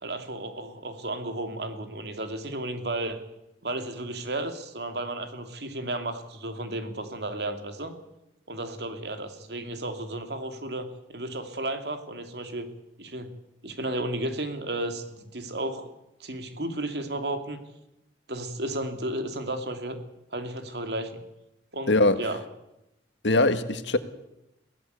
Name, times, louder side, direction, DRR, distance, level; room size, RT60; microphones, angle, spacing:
voice 1, 0.0-3.2 3.6-7.9 8.5-12.7 13.0-13.4 13.6-15.9 16.2-17.6 18.3-20.0 20.3-21.2 21.7-22.4, right 1 dB, 65° right, 2.8 m, -33 dB
voice 2, 21.9-22.2 23.2-24.0, left 2 dB, 85° left, 1.7 m, -21 dB
22.5 x 17.0 x 8.2 m
head